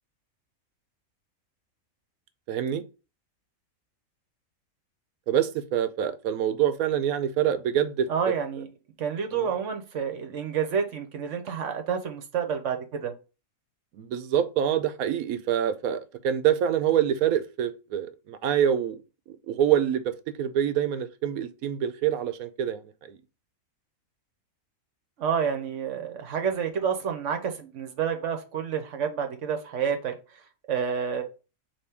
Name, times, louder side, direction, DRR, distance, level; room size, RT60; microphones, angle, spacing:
voice 1, 2.5-2.8 5.3-8.1 9.3-9.5 13.9-19.0 19.3-23.2, right 10 dB, 85° right, 1.1 m, -26 dB
voice 2, 8.1-8.7 9.0-13.1 25.2-30.1 30.7-31.2, right 7 dB, 60° right, 1.1 m, -29 dB
4.3 x 3.0 x 3.4 m
omnidirectional pair, 1.5 m